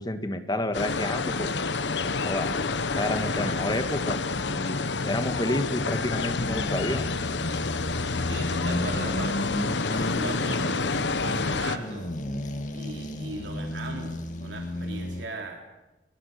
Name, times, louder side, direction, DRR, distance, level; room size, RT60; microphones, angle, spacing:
voice 1, 0.0-1.5 2.2-2.6 2.9-4.2 4.6-7.1, left 1 dB, 25° left, 8 dB, 1.7 m, -30 dB
sound 1, 0.7-11.8, left 4 dB, 85° left, 1.1 m, -28 dB
sound 2, 3.1-4.8 5.4-15.3, left 1 dB, 45° left, 2.0 m, -34 dB
voice 2, 8.3-9.6 9.8-12.1 12.7-15.7, right 2 dB, 90° right, 2 dB, 3.3 m, -39 dB
23.5 x 22.0 x 6.7 m, 1.0 s
head